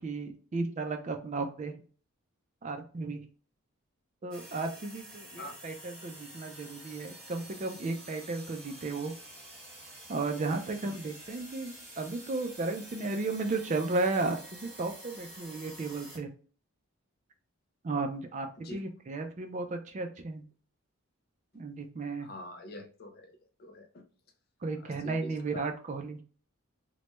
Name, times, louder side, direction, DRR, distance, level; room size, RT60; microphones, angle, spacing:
voice 1, 0.0-1.8 2.6-3.2 4.2-9.1 10.1-16.3 17.8-20.4 21.5-22.3 24.6-26.2, right 3 dB, 35° right, 6 dB, 0.3 m, -34 dB
sound 1, 4.3-16.2, right 1 dB, 5° left, 1.1 m, -49 dB
voice 2, 22.2-23.3 23.6-24.1 24.8-25.7, left 1 dB, 45° left, 5 dB, 0.5 m, -45 dB
3.0 x 2.1 x 2.9 m, 0.40 s
head